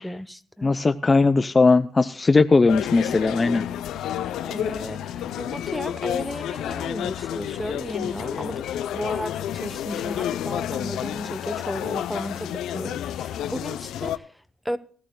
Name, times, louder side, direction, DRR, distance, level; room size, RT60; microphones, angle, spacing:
voice 1, 0.0-0.7 4.4-14.8, equal, ahead, 0.8 m, -34 dB
voice 2, 0.6-3.7, left 3 dB, 25° left, 0.5 m, -19 dB
sound 1, 2.7-14.2, left 11 dB, 80° left, 0.5 m, -30 dB
19.0 x 13.0 x 2.2 m
cardioid pair, 90°, 0 cm